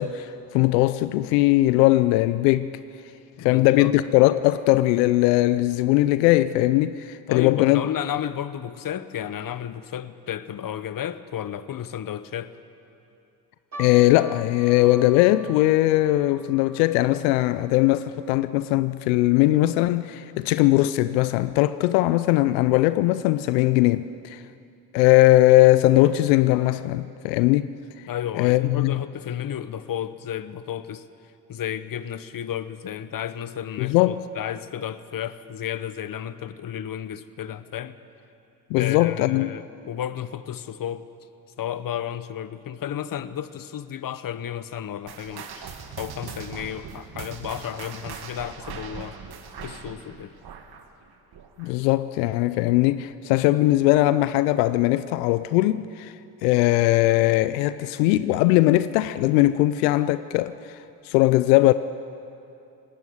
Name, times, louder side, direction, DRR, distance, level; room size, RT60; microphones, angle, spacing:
voice 1, 0.0-2.7 3.4-7.8 13.8-24.4 24.9-27.7 28.3-29.0 33.8-34.2 38.7-39.6 51.6-56.1 56.4-61.7, left 17 dB, 75° left, 0.6 m, -20 dB
voice 2, 3.4-3.9 7.3-12.5 28.1-31.0 31.5-38.0 38.8-41.1 41.6-49.2 49.6-50.3, left 10 dB, 40° left, 1.1 m, -32 dB
sound 1, 13.7-20.2 20.5-20.6 21.3-21.6 22.2-22.3 22.7-22.8, right 1 dB, 35° right, 4.2 m, -46 dB
sound 2, 45.1-51.9 52.2-52.5 53.1-53.2 54.0-54.1, right 6 dB, 50° right, 2.2 m, -40 dB
19.0 x 16.0 x 9.5 m
hypercardioid pair, 55°, 49 cm